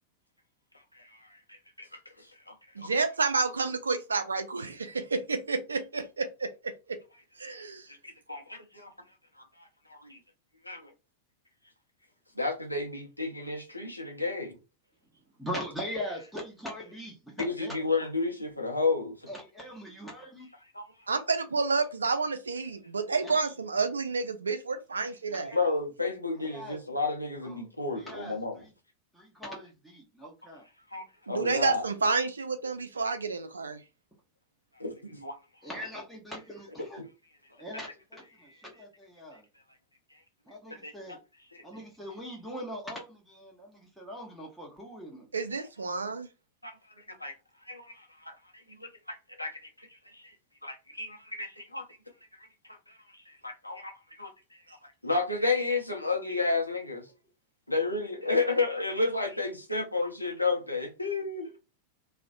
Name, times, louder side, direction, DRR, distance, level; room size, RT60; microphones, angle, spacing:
voice 1, 0.9-1.9 2.2-2.9 8.0-8.9 9.4-9.5 9.9-10.2 10.6-10.9 12.4-14.6 17.4-19.3 20.7-20.8 25.5-28.6 30.9-31.8 34.8-35.3 37.0-37.1 40.8-41.2 41.5-41.6 46.6-46.7 47.2-47.3 47.7-48.3 48.8-50.3 50.6-51.9 52.4-52.5 52.9-57.0 57.7-61.6, left 3 dB, 85° left, 0.6 m, -32 dB
voice 2, 2.8-7.0 7.4-7.9 21.1-25.5 31.3-33.8 45.3-46.3, right 4 dB, 75° right, 0.3 m, -30 dB
voice 3, 15.4-17.9 19.3-20.5 23.2-23.5 25.3-25.8 26.4-26.8 27.4-27.7 27.9-28.7 29.1-30.6 35.6-37.0 37.6-39.4 40.5-41.2 41.6-45.3, equal, ahead, 0.7 m, -41 dB
2.4 x 2.1 x 2.5 m
figure-of-eight pair, 90°, 0 cm